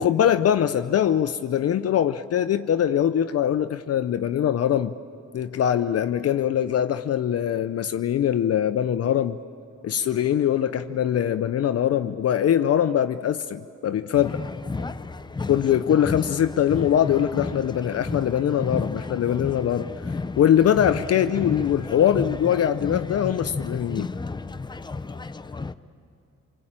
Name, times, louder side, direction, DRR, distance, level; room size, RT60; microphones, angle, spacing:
voice 1, 0.0-4.9 5.3-9.4 9.8-14.4 15.5-19.9 20.4-24.1, left 10 dB, 55° left, 0.7 m, -22 dB
sound 1, 14.1-25.7, left 3 dB, 15° left, 0.6 m, -32 dB
26.0 x 23.5 x 8.8 m
cardioid pair, 90°, 30 cm